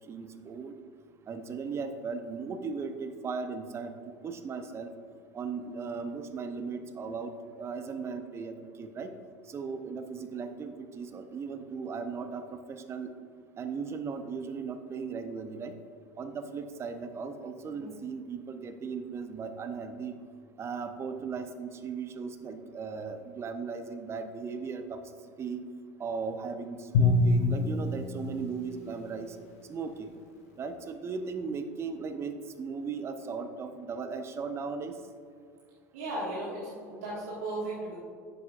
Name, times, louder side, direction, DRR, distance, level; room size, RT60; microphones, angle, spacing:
voice 1, 0.1-0.7 1.3-4.9 5.3-9.1 9.5-13.1 13.6-15.7 16.2-20.2 20.6-25.0 25.4-25.6 26.0-29.4 29.7-30.1 30.6-34.9, right 5 dB, 30° right, 8 dB, 0.8 m, -37 dB
Drum, 26.9-29.3, left 3 dB, 65° left, 0.9 m, -27 dB
voice 2, 35.9-37.9, right 1 dB, 70° right, -7 dB, 1.8 m, -36 dB
10.5 x 7.8 x 2.5 m, 2.2 s
figure-of-eight pair, 70°, 8 cm